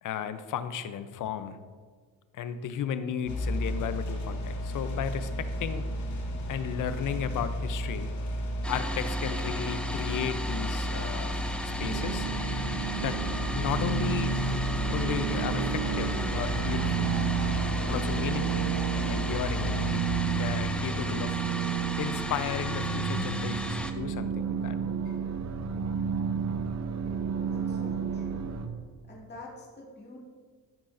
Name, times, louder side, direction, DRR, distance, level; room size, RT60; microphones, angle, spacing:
voice 1, 0.0-1.6 2.3-5.8 6.5-8.1 8.7-11.4 11.8-12.3 13.0-13.2 13.6-14.3 14.9-17.1 17.9-18.6 19.0-20.0 20.4-21.4 22.0-24.8, left 8 dB, 55° left, 11 dB, 0.7 m, -34 dB
sound 1, 3.3-19.9, equal, 85° left, 1.6 m, -34 dB
sound 2, 8.6-23.9, left 1 dB, 5° left, 0.5 m, -36 dB
sound 3, 11.8-28.7, right 6 dB, 45° right, 0.7 m, -31 dB
voice 2, 27.1-28.6 29.1-30.2, left 2 dB, 25° left, -4 dB, 2.2 m, -47 dB
13.5 x 5.6 x 2.6 m, 1.6 s
cardioid pair, 100°, 37 cm